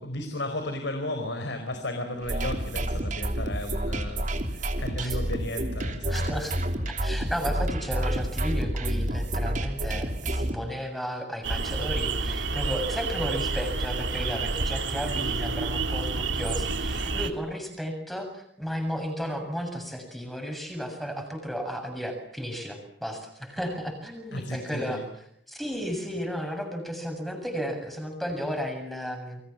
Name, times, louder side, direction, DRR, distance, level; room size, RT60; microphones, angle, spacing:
voice 1, 0.0-6.5 24.3-25.1, left 1 dB, 70° left, 6 dB, 4.7 m, -34 dB
sound 1, 2.2-10.6, right 1 dB, 40° right, 3.2 m, -29 dB
voice 2, 6.1-6.6 7.0-25.0 25.5-29.4, equal, ahead, 5 dB, 7.3 m, -34 dB
sound 2, 11.4-17.3, right 3 dB, 75° right, 2.5 m, -29 dB
29.5 x 24.5 x 7.3 m, 0.71 s
head